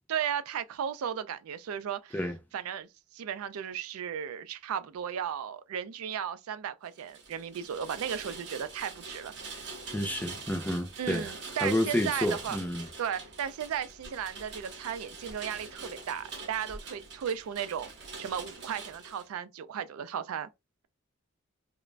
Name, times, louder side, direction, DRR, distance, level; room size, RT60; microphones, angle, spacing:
voice 1, 0.1-2.2 2.5-2.9 3.1-9.3 11.0-12.6 13.0-17.9 18.2-20.5, right 8 dB, 85° right, 0.3 m, -35 dB
Rain, 6.9-19.3, right 4 dB, 50° right, 0.7 m, -44 dB
voice 2, 9.9-11.3 11.6-12.9, left 1 dB, 10° left, 0.4 m, -30 dB
2.4 x 2.1 x 3.1 m
head